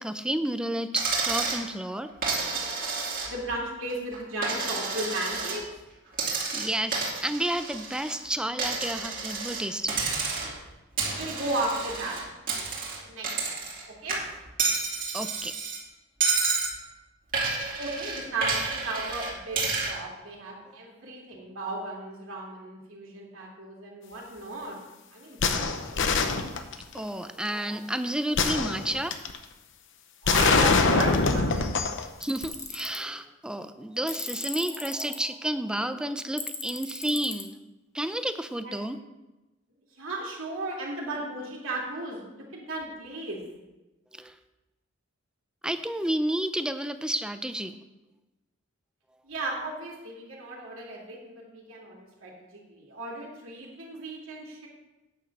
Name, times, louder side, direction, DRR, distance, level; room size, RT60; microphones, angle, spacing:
voice 1, 0.0-2.1 6.5-10.0 15.1-15.5 20.7-20.8 26.9-29.1 32.2-37.6 37.9-39.0 44.1-44.4 45.6-47.7, right 1 dB, 5° right, 10 dB, 0.4 m, -31 dB
Coin (dropping), 1.0-1.6 2.2-3.5 3.9-5.6 6.1-8.2 8.6-9.6 9.9-10.6 11.0-13.8 14.1-15.8 16.2-16.7 17.3-19.9, right 4 dB, 45° right, 2.6 m, -30 dB
voice 2, 3.3-5.6 11.1-12.2 13.0-13.6 13.9-14.2 17.8-19.6 19.9-24.8 25.1-25.7 30.2-31.7 38.6-38.8 40.0-43.4 49.2-54.7, right 2 dB, 80° right, -3 dB, 2.5 m, -35 dB
sound 1, 25.4-27.0 28.4-29.4 30.3-32.1 32.4-32.5, left 4 dB, 65° left, 0.8 m, -24 dB
Tools, 32.2-33.0 34.1-35.2 36.4-37.4, left 4 dB, 15° left, 1.0 m, -37 dB
9.4 x 6.2 x 6.5 m, 1.1 s
head